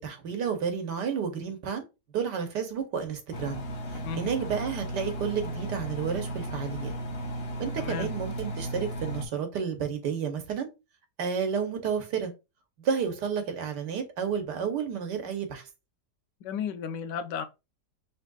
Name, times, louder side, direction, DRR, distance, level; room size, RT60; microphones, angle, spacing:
voice 1, 0.0-1.8 2.1-3.6 3.9-6.9 7.6-10.7 11.2-12.3 12.8-15.7, right 6 dB, 80° right, 1.5 m, -31 dB
Engine, 3.3-9.3, right 1 dB, 45° left, 0.9 m, -35 dB
voice 2, 7.8-8.1 16.4-17.5, left 7 dB, 85° left, 1.3 m, -33 dB
5.3 x 3.3 x 2.3 m
omnidirectional pair, 1.8 m